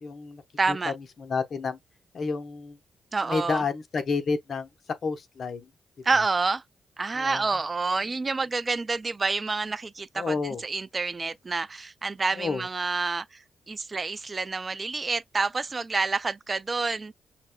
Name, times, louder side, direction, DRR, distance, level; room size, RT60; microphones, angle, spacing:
voice 1, 0.0-0.4 0.7-1.8 2.1-2.8 3.2-4.7 5.0-5.7 7.1-7.5 10.2-10.6 12.3-12.7, left 4 dB, 55° left, 0.8 m, -30 dB
voice 2, 0.6-0.9 3.1-3.6 6.0-6.6 7.0-10.4 10.6-13.4 13.7-17.1, right 3 dB, 30° right, 0.3 m, -28 dB
5.9 x 2.2 x 2.2 m
cardioid pair, 85°, 0 cm